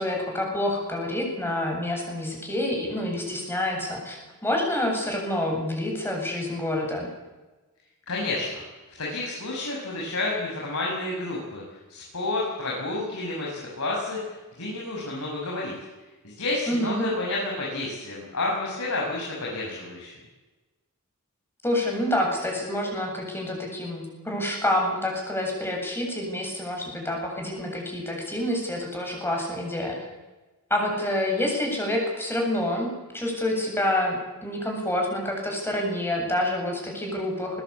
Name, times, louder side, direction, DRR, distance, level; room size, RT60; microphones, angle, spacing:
voice 1, 0.0-7.1 16.7-17.1 21.6-30.0 30.7-37.6, left 1 dB, 10° left, 0 dB, 7.8 m, -27 dB
voice 2, 8.1-8.6 9.0-11.6 11.9-14.2 14.6-15.7 16.2-20.1, left 2 dB, 75° left, -4 dB, 6.4 m, -30 dB
21.5 x 20.5 x 8.5 m, 1.2 s
head